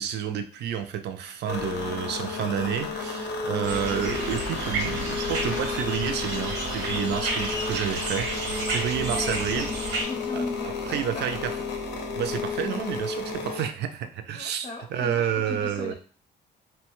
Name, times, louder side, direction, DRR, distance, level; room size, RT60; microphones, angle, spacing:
voice 1, 0.0-8.3 8.7-9.7 10.3-10.5 10.9-11.5 12.1-15.9, right 9 dB, 75° right, 8 dB, 0.4 m, -30 dB
sound 1, 1.5-13.6, left 4 dB, 75° left, 0.6 m, -32 dB
sound 2, 3.6-10.0, right 2 dB, 90° right, 0.9 m, -32 dB
voice 2, 7.5-7.9 9.0-11.5 14.3-15.9, left 3 dB, 30° left, -1 dB, 0.4 m, -38 dB
2.7 x 2.2 x 3.0 m, 0.41 s
cardioid pair, 130°, 18 cm